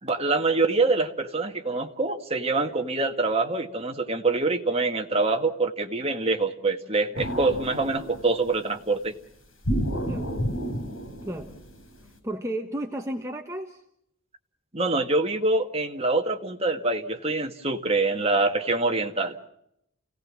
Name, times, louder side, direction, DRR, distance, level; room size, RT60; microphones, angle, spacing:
voice 1, 0.0-9.1 14.7-19.4, right 3 dB, 30° right, 4 dB, 1.8 m, -25 dB
sound 1, 7.2-8.6 9.6-12.1, equal, 70° left, 5.7 m, -30 dB
voice 2, 11.2-11.6 12.2-13.8, right 1 dB, 15° right, 3 dB, 1.2 m, -33 dB
29.5 x 17.5 x 7.5 m, 0.77 s
head